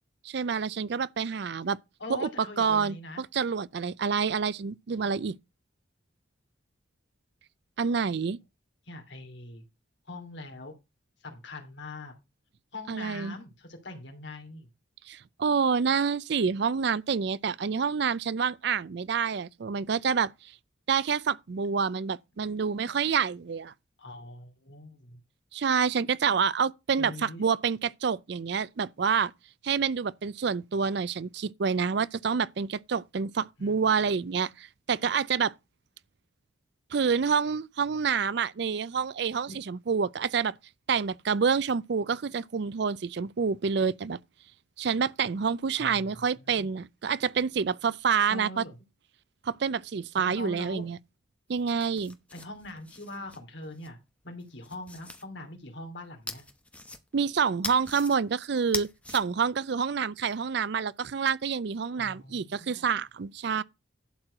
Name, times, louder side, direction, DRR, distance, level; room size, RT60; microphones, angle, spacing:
voice 1, 0.2-1.8 2.1-2.3 2.6-5.3 7.8-8.4 12.9-13.3 15.1-20.5 20.9-23.7 25.5-29.3 29.6-35.5 36.9-40.5 40.9-44.2 44.8-48.6 49.4-51.0 51.5-52.2 57.1-63.6, right 6 dB, 55° right, 0.4 m, -28 dB
voice 2, 2.0-3.2 8.8-9.7 10.0-10.8 11.2-12.2 12.7-14.7 24.0-25.2 27.0-27.5 33.6-34.3 39.5-39.6 45.8-46.1 46.4-46.7 48.3-48.8 50.2-50.9 52.3-54.0 54.2-56.4 62.0-62.9, left 2 dB, 65° left, 2.8 m, -42 dB
sound 1, 51.5-53.9 54.4-55.2 56.3-57.3 57.6-58.2 58.6-59.2, left 2 dB, 5° left, 0.9 m, -40 dB
11.5 x 4.6 x 6.4 m
head